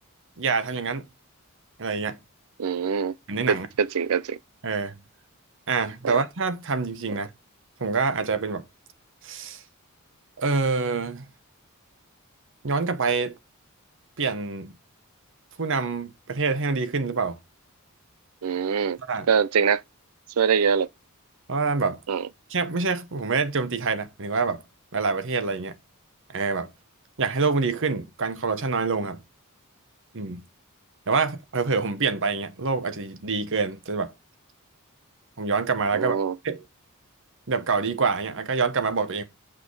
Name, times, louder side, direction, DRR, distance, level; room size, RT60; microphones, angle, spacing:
voice 1, 0.4-1.0 1.8-2.2 3.3-3.7 4.6-5.0 5.7-7.3 7.8-8.6 9.2-9.6 10.4-11.3 12.6-13.4 14.2-14.7 15.6-17.4 19.1-19.3 21.5-22.0 22.5-24.6 24.9-25.8 26.3-26.7 27.2-29.2 30.1-30.4 31.1-34.1 35.4-36.6 37.5-39.2, right 4 dB, 60° right, 1.1 m, -26 dB
voice 2, 2.6-3.1 3.5-4.4 6.0-6.2 18.4-19.0 19.3-19.8 20.4-20.9 22.1-22.3 35.9-36.4, right 6 dB, 75° right, 0.5 m, -23 dB
8.4 x 4.9 x 4.7 m
head